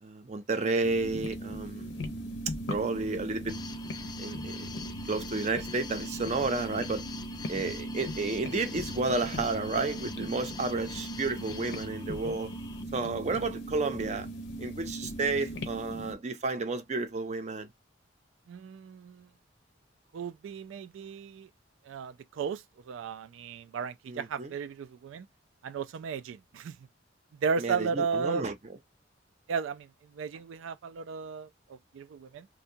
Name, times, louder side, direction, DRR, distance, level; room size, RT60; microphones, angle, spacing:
voice 1, 0.0-1.9 2.7-3.6 4.2-4.7 5.1-7.0 7.5-12.5 12.9-14.3 14.6-17.7 24.1-24.5 27.6-28.5, right 3 dB, 35° right, 0.5 m, -31 dB
sound 1, 0.8-16.1, equal, 65° left, 0.6 m, -39 dB
sound 2, 3.5-12.8, left 5 dB, 20° left, 0.3 m, -45 dB
voice 2, 18.5-19.3 20.1-21.5 21.8-25.3 25.6-26.8 27.3-28.4 29.5-32.5, right 5 dB, 90° right, 0.3 m, -35 dB
2.6 x 2.2 x 2.6 m
head